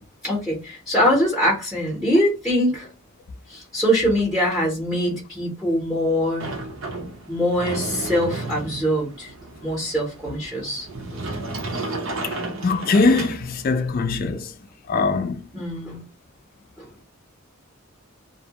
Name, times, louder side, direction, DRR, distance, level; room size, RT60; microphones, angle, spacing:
voice 1, 0.2-2.9 3.5-6.5 7.3-9.3 9.6-11.2 12.0-12.1 15.5-16.0 16.8-16.9, equal, ahead, 0.7 m, -23 dB
Sliding door, 6.4-13.9, right 2 dB, 70° right, 0.7 m, -33 dB
voice 2, 12.6-14.5 14.9-15.4, left 3 dB, 45° left, 0.3 m, -21 dB
2.6 x 2.0 x 2.8 m
head